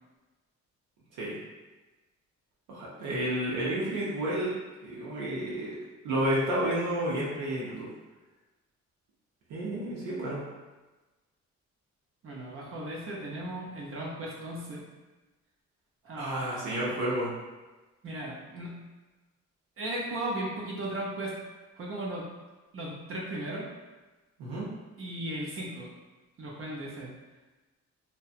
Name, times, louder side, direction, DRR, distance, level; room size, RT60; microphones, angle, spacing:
voice 1, 2.7-4.5 4.8-5.8 6.0-7.9 9.5-10.4 16.2-17.3 24.4-24.7, right 1 dB, 85° right, -6 dB, 0.6 m, -31 dB
voice 2, 12.2-14.9 16.0-16.7 18.0-18.8 19.8-21.4 21.8-22.3 22.7-23.7 24.4-24.5 25.0-25.9 26.4-27.1, right 1 dB, 45° right, -4 dB, 0.6 m, -36 dB
2.7 x 2.1 x 2.4 m, 1.2 s
cardioid pair, 90°, 30 cm